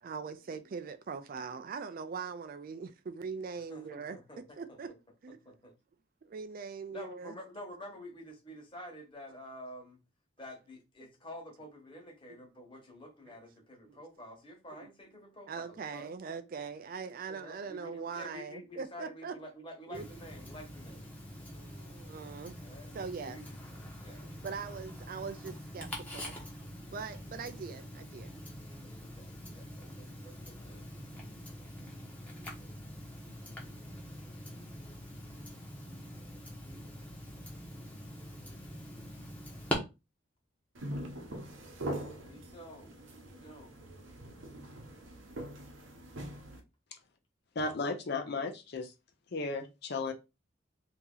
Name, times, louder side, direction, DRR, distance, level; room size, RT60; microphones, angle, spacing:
voice 1, 0.0-4.2 4.6-4.9 5.2-5.4 6.2-7.3 13.3-13.4 13.8-14.0 15.5-19.4 19.9-20.1 21.4-22.6 22.9-23.4 24.2-26.4 26.9-28.3, right 5 dB, 45° right, 0.3 m, -41 dB
voice 2, 3.7-4.4 4.7-4.8 5.4-5.7 6.9-10.0 10.4-16.1 17.3-21.1 22.6-22.9 23.2-23.5 24.0-24.3 29.0-30.8 42.1-43.7, equal, 25° left, 1.2 m, -49 dB
Tick-tock, 19.9-39.7, equal, 10° left, 0.8 m, -44 dB
sound 1, 40.7-46.6, right 1 dB, 75° right, 0.8 m, -43 dB
voice 3, 47.6-48.9 49.3-50.1, left 3 dB, 55° left, 0.5 m, -34 dB
2.9 x 2.8 x 3.7 m
head